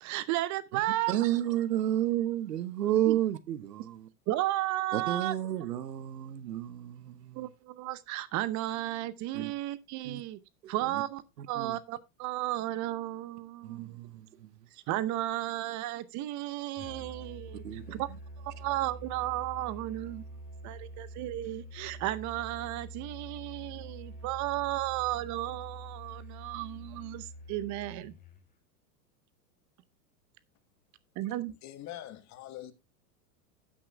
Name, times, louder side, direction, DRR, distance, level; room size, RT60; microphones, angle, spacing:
voice 1, 0.0-1.1 3.1-3.2 4.3-5.3 7.3-10.4 10.7-14.0 14.9-18.1 18.4-20.2 20.6-28.1 31.2-31.5, right 15 dB, 40° right, 0.8 m, -34 dB
voice 2, 1.1-4.1 4.9-7.5 9.3-9.5 10.0-10.2 10.9-11.0 11.4-11.8 13.6-14.5 17.6-18.0, right 12 dB, 85° right, 1.0 m, -31 dB
Musical instrument, 16.8-28.5, right 1 dB, 15° left, 3.7 m, -46 dB
voice 3, 31.6-32.7, left 13 dB, 35° left, 1.4 m, -43 dB
15.5 x 8.6 x 2.2 m
hypercardioid pair, 110°, 47 cm